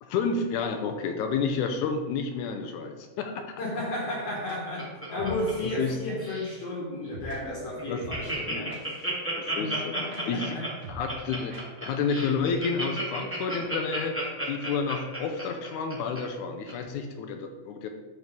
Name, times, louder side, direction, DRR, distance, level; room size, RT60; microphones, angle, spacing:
voice 1, 0.0-3.5 5.6-6.0 7.9-8.0 9.4-10.0 10.2-10.6 10.9-11.6 11.8-17.9, left 5 dB, 80° left, 5 dB, 1.9 m, -30 dB
voice 2, 3.6-9.1 9.6-9.8 10.1-10.7, left 1 dB, 55° left, -3 dB, 2.2 m, -33 dB
Laughter, 4.2-5.9 6.2-6.6 7.0-7.1 7.4-7.5 7.8-16.2 16.7-16.8, right 1 dB, 5° right, 1.1 m, -33 dB
sound 1, 4.4-4.6 5.2-5.4 5.9-6.0 7.1-7.4 8.0-9.1 9.4-9.5 9.8-9.9 10.1-10.2 10.5-10.6 10.8-11.2 11.5-11.6 11.9-12.0 12.2-12.3, right 1 dB, 65° right, 1.1 m, -42 dB
12.0 x 4.3 x 3.6 m, 1.2 s
omnidirectional pair, 3.8 m